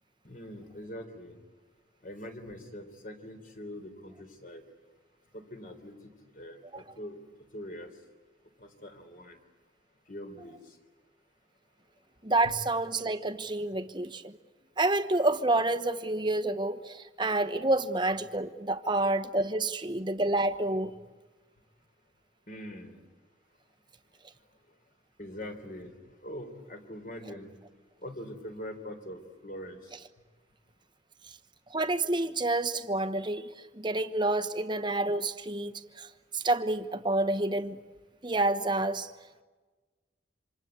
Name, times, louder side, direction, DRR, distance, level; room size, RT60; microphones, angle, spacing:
voice 1, 0.2-1.4 2.0-4.6 5.3-5.9 6.3-7.2 7.5-7.9 8.6-9.4 10.1-10.6 12.4-12.6 22.5-22.9 25.2-25.9 26.2-27.5 28.0-29.8, equal, 50° left, 3.7 m, -43 dB
voice 2, 12.2-14.3 14.8-20.9 31.7-33.5 33.7-36.1 36.3-37.8 38.2-39.1, right 2 dB, 25° right, 1.1 m, -28 dB
27.5 x 26.5 x 8.2 m
head